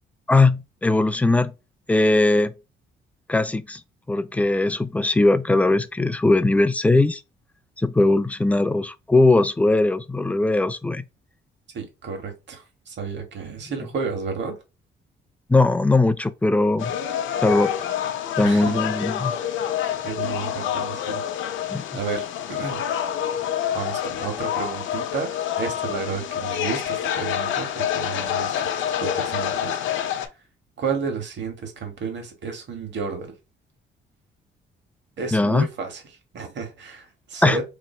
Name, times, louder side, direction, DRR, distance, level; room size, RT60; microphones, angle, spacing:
voice 1, 0.3-1.5 1.9-2.5 3.3-3.8 4.1-7.2 7.8-11.0 15.5-16.9 17.4-17.7 18.4-19.3 21.7-21.8 35.3-35.6 37.4-37.6, left 2 dB, 5° left, 0.4 m, -19 dB
voice 2, 11.7-14.6 18.4-18.8 20.0-21.2 21.9-22.8 23.7-30.3 30.8-33.3 35.2-36.0 36.3-37.6, right 5 dB, 65° right, 1.5 m, -32 dB
sound 1, 16.8-30.3, left 10 dB, 75° left, 0.6 m, -27 dB
3.1 x 2.5 x 4.2 m
cardioid pair, 90°, 20 cm